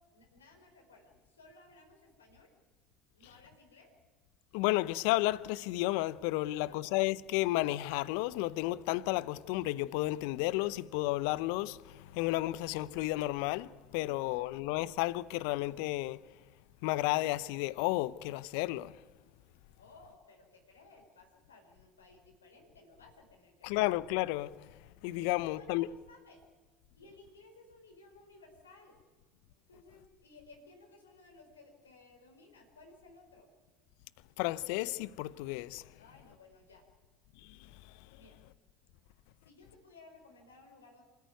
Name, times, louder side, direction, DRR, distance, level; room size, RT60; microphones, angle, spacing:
voice 1, 0.1-2.5 3.1-3.9 6.4-6.8 14.0-14.4 19.8-23.9 25.2-26.4 26.9-29.0 29.7-33.5 36.0-36.9 38.1-38.4 39.4-41.0, left 3 dB, 90° left, 4.5 m, -58 dB
voice 2, 4.5-16.2 16.8-19.0 23.6-25.9 34.4-35.8 37.4-37.9, left 18 dB, 70° left, 0.7 m, -32 dB
27.0 x 14.0 x 9.4 m
hypercardioid pair, 70°, 0 cm